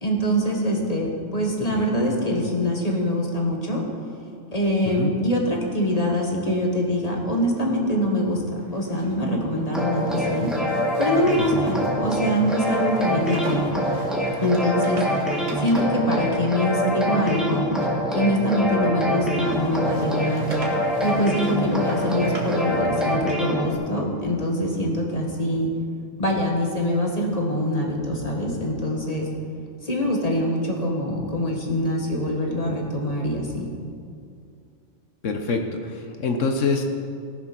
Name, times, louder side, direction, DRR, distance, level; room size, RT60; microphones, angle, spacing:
voice 1, 0.0-3.8 4.5-10.5 11.0-13.7 14.4-15.0 15.6-17.7 18.1-20.5 21.0-25.7 26.2-29.3 29.8-33.7, equal, 30° left, 0 dB, 1.7 m, -24 dB
sound 1, 8.6-19.1 19.4-23.8, right 1 dB, 70° right, 2.2 m, -41 dB
sound 2, 9.7-23.7, equal, ahead, 1.9 m, -25 dB
voice 2, 35.2-36.9, left 4 dB, 75° left, 4 dB, 1.3 m, -25 dB
17.5 x 7.2 x 6.0 m, 2.3 s
omnidirectional pair, 1.3 m